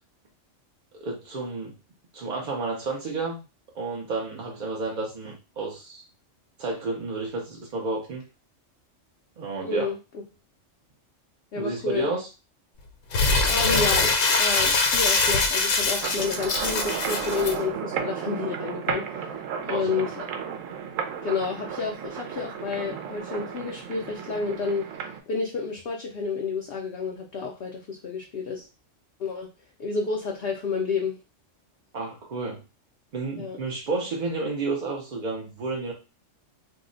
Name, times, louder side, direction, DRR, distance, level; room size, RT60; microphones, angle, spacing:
voice 1, 1.0-1.7 2.1-3.4 3.7-6.0 6.6-8.2 9.4-9.9 11.6-12.3 19.7-20.1 31.9-32.6 33.1-35.9, right 3 dB, 50° right, -1 dB, 0.5 m, -31 dB
voice 2, 9.6-10.0 11.5-12.1 13.5-20.2 21.2-24.8 25.3-28.7 29.2-29.5 29.8-31.2 33.4-33.6, left 4 dB, 65° left, 0 dB, 0.7 m, -30 dB
Crumpling crinkling, 13.1-17.5, left 3 dB, 80° left, 1.0 m, -23 dB
sound 1, 16.0-25.2, right 7 dB, 85° right, 1.0 m, -33 dB
2.7 x 2.1 x 3.7 m, 0.31 s
omnidirectional pair, 1.3 m